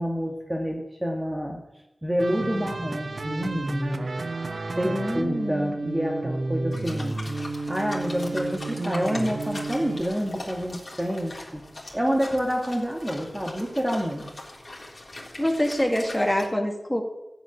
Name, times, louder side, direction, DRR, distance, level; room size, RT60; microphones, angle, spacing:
voice 1, 0.0-1.6 2.0-4.1 4.8-7.2 7.7-14.3, equal, 15° right, 1 dB, 1.7 m, -28 dB
sound 1, 2.2-10.0, right 2 dB, 60° right, 1.1 m, -32 dB
voice 2, 4.8-5.7 15.4-17.0, left 1 dB, 10° left, 3 dB, 2.4 m, -25 dB
sound 2, 6.7-16.5, left 2 dB, 40° left, 3.6 m, -41 dB
14.5 x 7.5 x 9.9 m, 0.94 s
wide cardioid pair, 80°, 0 cm